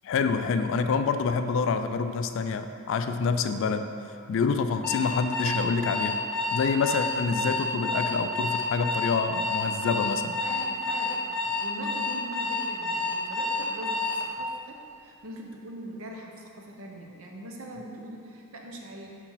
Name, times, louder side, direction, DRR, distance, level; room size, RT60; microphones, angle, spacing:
voice 1, 0.0-3.9 4.3-6.2 6.5-10.4, left 5 dB, 60° left, 9 dB, 0.3 m, -27 dB
Alarm, 4.8-14.2, left 3 dB, 5° left, 0.9 m, -29 dB
voice 2, 10.4-19.1, right 1 dB, 65° right, 0 dB, 0.8 m, -42 dB
4.5 x 4.4 x 5.6 m, 2.6 s
head